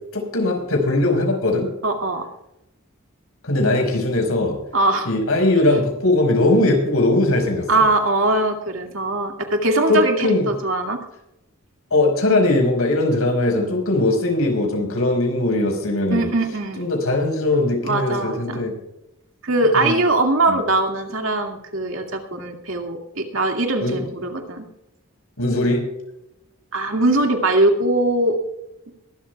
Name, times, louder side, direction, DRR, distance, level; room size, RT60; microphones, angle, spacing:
voice 1, 0.1-1.7 3.4-4.6 5.0-7.7 9.9-10.5 11.9-16.3 16.8-18.7 19.7-19.9 20.5-20.6 23.8-24.0 25.4-25.9, left 2 dB, 80° left, 2 dB, 5.3 m, -20 dB
voice 2, 1.8-2.3 4.7-5.1 7.7-11.0 16.1-16.8 17.8-18.6 19.4-24.6 26.7-28.4, right 2 dB, 65° right, 3 dB, 2.3 m, -21 dB
22.5 x 12.5 x 2.4 m, 0.87 s
head